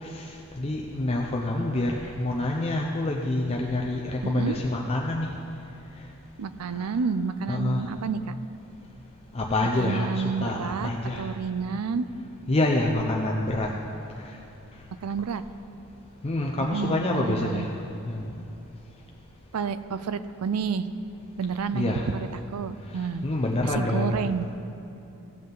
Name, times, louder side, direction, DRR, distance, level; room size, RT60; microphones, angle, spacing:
voice 1, 0.0-5.3 6.8-6.9 7.5-7.9 9.3-11.3 12.5-13.7 16.2-17.8 18.1-18.4 21.7-22.1 23.2-24.2, left 2 dB, 25° left, -1 dB, 0.6 m, -27 dB
voice 2, 4.2-4.6 6.4-8.3 9.8-10.9 11.2-12.1 15.0-15.4 16.7-17.7 19.5-20.9 21.4-22.2 22.5-23.3 23.6-24.6, right 5 dB, 85° right, 13 dB, 0.4 m, -29 dB
16.5 x 7.5 x 3.9 m, 2.7 s
head